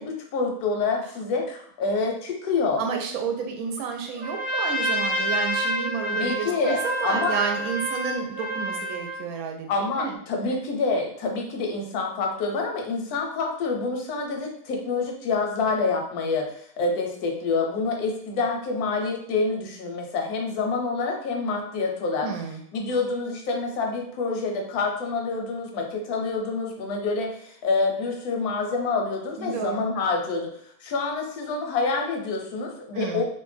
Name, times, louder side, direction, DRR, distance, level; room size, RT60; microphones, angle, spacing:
voice 1, 0.0-2.8 6.1-7.4 9.7-22.3 22.7-30.5 30.8-33.2, left 4 dB, 90° left, 2 dB, 1.2 m, -27 dB
voice 2, 2.8-9.7 10.0-10.2 22.2-22.6 29.4-29.8 32.9-33.2, right 6 dB, 75° right, 3 dB, 1.0 m, -30 dB
Trumpet, 4.2-9.2, right 1 dB, ahead, 0.5 m, -28 dB
2.8 x 2.1 x 3.1 m, 0.65 s
omnidirectional pair, 1.6 m